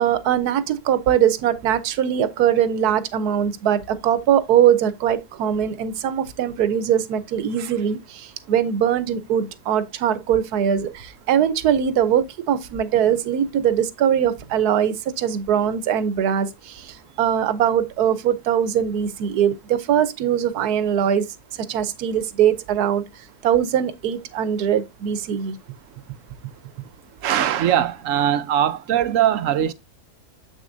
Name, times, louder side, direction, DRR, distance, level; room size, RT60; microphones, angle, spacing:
voice 1, 0.0-21.3 21.7-25.6, right 9 dB, 90° right, 1.3 m, -21 dB
voice 2, 27.2-29.7, right 10 dB, 65° right, 0.9 m, -20 dB
7.6 x 6.4 x 2.6 m
omnidirectional pair, 1.6 m